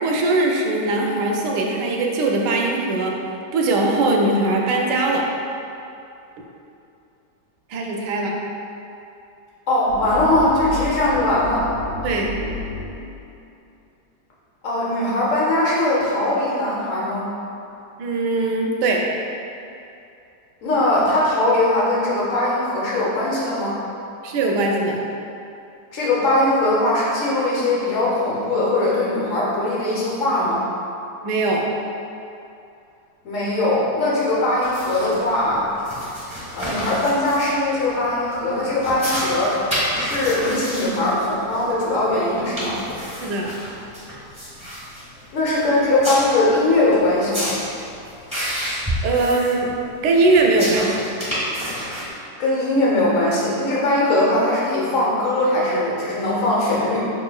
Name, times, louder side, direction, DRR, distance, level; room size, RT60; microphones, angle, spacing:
voice 1, 0.0-3.1 3.5-5.2 7.7-8.3 12.0-12.3 18.0-19.1 24.2-25.1 31.2-31.6 43.2-43.5 49.0-49.7 50.0-50.9, right 2 dB, 85° right, -1 dB, 1.2 m, -20 dB
voice 2, 9.7-11.7 14.6-17.3 20.6-23.8 25.9-30.6 33.2-35.6 36.5-39.6 39.9-42.8 45.3-47.5 52.4-57.1, left 1 dB, 55° left, -6 dB, 1.2 m, -20 dB
sound 1, 9.9-13.4, left 2 dB, 35° left, 1.0 m, -32 dB
sound 2, 34.6-52.1, equal, 5° right, 1.0 m, -30 dB
5.3 x 3.2 x 2.2 m, 2.7 s
omnidirectional pair, 1.8 m